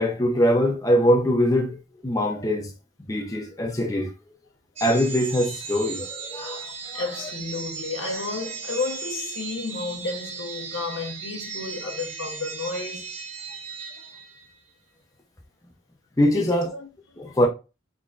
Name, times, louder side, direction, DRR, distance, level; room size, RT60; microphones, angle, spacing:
voice 1, 0.0-2.7 3.1-4.1 4.8-7.0 16.2-16.7 17.2-17.5, equal, 15° left, 0.6 m, -22 dB
sound 1, 4.8-14.6, right 5 dB, 35° right, 0.7 m, -36 dB
voice 2, 6.9-13.1 16.3-16.9, left 3 dB, 75° left, 1.1 m, -32 dB
3.7 x 3.6 x 2.5 m
head